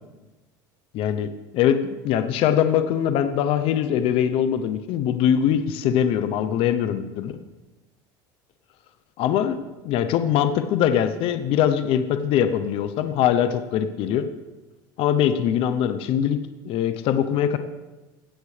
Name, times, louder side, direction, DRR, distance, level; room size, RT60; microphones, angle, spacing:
voice 1, 0.9-7.4 9.2-14.3 15.0-16.4 16.6-17.6, left 9 dB, 60° left, 9 dB, 0.7 m, -22 dB
16.5 x 8.1 x 3.3 m, 1.1 s
supercardioid pair, 105°, 11 cm